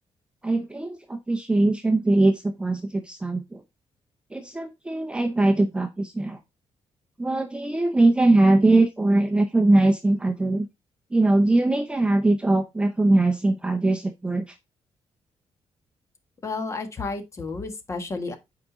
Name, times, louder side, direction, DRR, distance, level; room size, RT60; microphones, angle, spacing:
voice 1, 0.4-3.6 4.3-6.4 7.2-10.7 11.1-14.6, right 2 dB, 10° right, 0.6 m, -21 dB
voice 2, 16.4-18.4, left 3 dB, 25° left, 1.5 m, -31 dB
8.6 x 4.9 x 3.9 m
wide cardioid pair, 175°, 11 cm